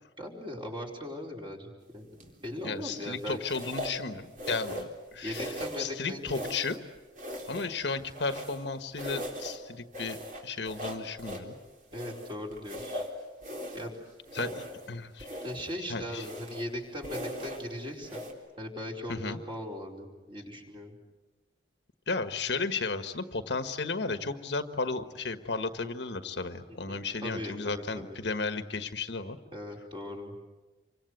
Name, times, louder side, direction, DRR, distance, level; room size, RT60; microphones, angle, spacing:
voice 1, 0.2-3.6 5.2-6.3 11.9-13.1 13.7-13.9 15.4-18.3 18.6-21.0 26.9-28.2 29.5-30.4, left 1 dB, 30° right, 0 dB, 4.8 m, -39 dB
sound 1, 2.2-2.5 3.4-4.0 4.4-5.0 5.3-5.9 6.3-6.8 7.2-8.7 9.0-9.6 9.9-11.5 11.9-13.9 14.3-14.9 15.2-15.7 16.1-16.7 17.0-17.7 18.0-18.3, equal, 45° right, 3.9 m, -39 dB
voice 2, 2.6-6.8 7.5-11.6 14.3-15.4 15.8-16.2 19.1-19.4 22.1-29.4, left 4 dB, 75° left, 9 dB, 1.4 m, -34 dB
27.5 x 24.5 x 8.1 m, 1.2 s
head